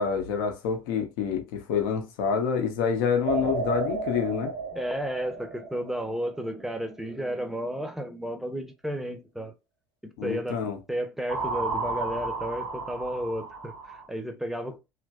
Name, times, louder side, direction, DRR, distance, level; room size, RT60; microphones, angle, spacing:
voice 1, 0.0-4.5 10.2-10.8, left 6 dB, 65° left, 0.6 m, -27 dB
sound 1, 3.2-6.5 11.3-14.1, right 4 dB, 75° right, 0.8 m, -33 dB
voice 2, 4.7-9.5 10.0-10.6 10.9-14.8, equal, ahead, 0.6 m, -33 dB
2.9 x 2.5 x 2.3 m
figure-of-eight pair, 60°, 12 cm